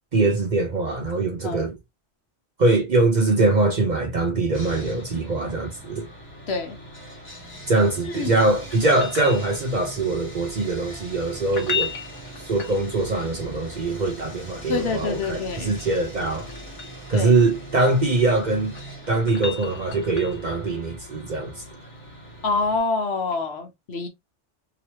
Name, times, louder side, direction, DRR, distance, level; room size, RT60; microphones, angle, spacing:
voice 1, 0.1-1.7 2.6-6.1 7.7-11.9 12.4-16.5 17.1-18.8 19.1-21.6, right 2 dB, 45° right, 0.7 m, -22 dB
Sawing, 4.5-22.8, right 1 dB, 10° left, 1.1 m, -41 dB
voice 2, 6.5-6.8 8.0-8.4 14.7-15.7 17.1-17.4 22.4-24.1, left 4 dB, 60° left, 1.0 m, -26 dB
sound 1, 8.7-9.9 11.4-13.2 15.4-17.0 18.4-20.5 23.3-23.4, left 6 dB, 80° left, 1.2 m, -34 dB
2.9 x 2.9 x 2.8 m
omnidirectional pair, 1.2 m